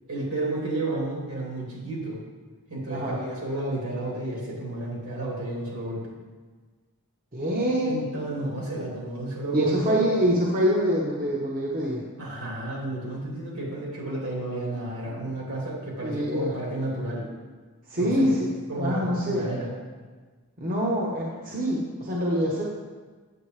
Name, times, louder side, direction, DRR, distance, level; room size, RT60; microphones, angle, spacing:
voice 1, 0.1-2.2 2.7-6.1 7.8-10.0 12.2-17.3 17.9-18.3 18.7-19.7, right 2 dB, 75° right, -4 dB, 2.9 m, -31 dB
voice 2, 7.3-8.0 9.5-12.1 15.0-15.2 16.0-16.5 17.9-19.5 20.6-22.6, equal, 40° right, -4 dB, 0.9 m, -25 dB
8.7 x 8.1 x 3.2 m, 1.4 s
head